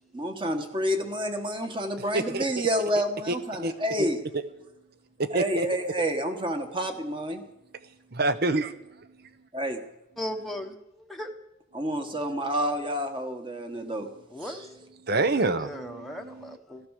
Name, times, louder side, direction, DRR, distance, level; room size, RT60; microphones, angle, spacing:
voice 1, 0.1-4.2 5.3-7.4 9.5-9.8 11.7-14.1 14.4-14.7, equal, 25° right, 5 dB, 1.6 m, -29 dB
voice 2, 5.2-5.7 8.1-8.8 15.0-16.6, right 2 dB, 50° right, 13 dB, 0.9 m, -27 dB
voice 3, 10.2-11.3 14.3-14.7 15.3-16.8, equal, ahead, 1 dB, 1.0 m, -37 dB
15.5 x 14.0 x 6.6 m, 0.88 s
head